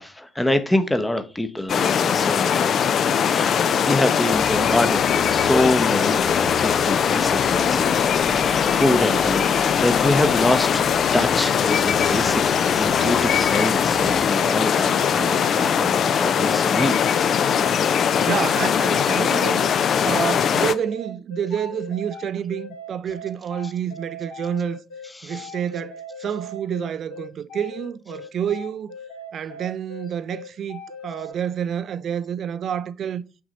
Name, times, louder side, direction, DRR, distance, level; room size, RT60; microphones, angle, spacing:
voice 1, 0.0-2.7 3.2-17.0 25.1-25.5, left 1 dB, 10° left, 0.8 m, -25 dB
sound 1, 1.7-20.7, left 7 dB, 45° left, 0.5 m, -20 dB
sound 2, 4.3-14.3, left 3 dB, 30° left, 1.0 m, -33 dB
sound 3, 12.5-31.3, left 1 dB, 70° left, 1.2 m, -39 dB
voice 2, 18.2-19.7 20.0-24.8 25.2-28.9 29.3-33.2, right 8 dB, 50° right, 0.4 m, -28 dB
6.0 x 3.8 x 5.3 m
figure-of-eight pair, 45°, 0 cm